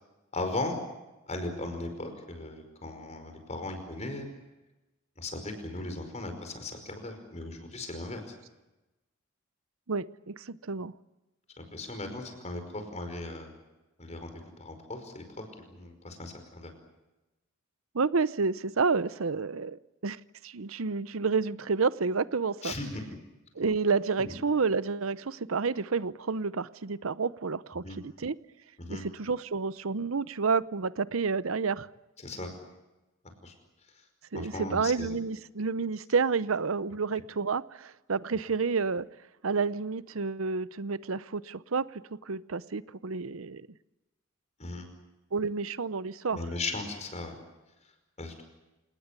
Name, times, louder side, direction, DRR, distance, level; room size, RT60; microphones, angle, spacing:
voice 1, 0.3-0.8 1.3-4.3 5.2-8.2 11.6-13.5 14.0-15.2 15.7-16.7 22.6-23.0 24.2-24.3 27.8-28.0 28.8-29.0 32.2-32.5 33.4-33.5 34.3-35.2 44.6-44.9 46.3-47.3 48.2-48.4, left 2 dB, 35° left, 6 dB, 5.2 m, -37 dB
voice 2, 9.9-10.9 17.9-22.7 23.6-28.4 28.9-31.9 34.3-39.1 39.4-43.7 45.3-46.4, right 4 dB, 80° right, 17 dB, 0.8 m, -30 dB
28.0 x 19.0 x 8.3 m, 1.0 s
head